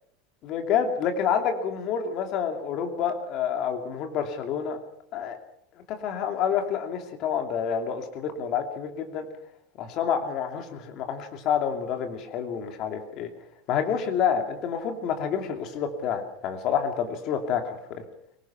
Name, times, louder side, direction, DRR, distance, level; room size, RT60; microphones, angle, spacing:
voice 1, 0.4-4.8 5.1-5.4 5.9-9.3 9.8-13.3 13.7-17.6 17.9-18.0, left 7 dB, 35° left, 5 dB, 2.6 m, -28 dB
24.0 x 19.5 x 5.9 m, 0.72 s
supercardioid pair, 175°, 0 cm